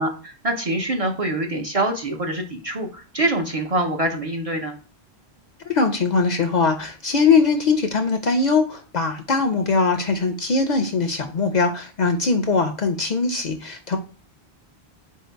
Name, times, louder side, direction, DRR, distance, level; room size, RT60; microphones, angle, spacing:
voice 1, 0.0-4.7, right 1 dB, 45° right, 2 dB, 0.5 m, -25 dB
voice 2, 5.7-14.0, left 4 dB, 55° left, 5 dB, 0.5 m, -21 dB
4.4 x 2.8 x 4.3 m, 0.38 s
omnidirectional pair, 1.1 m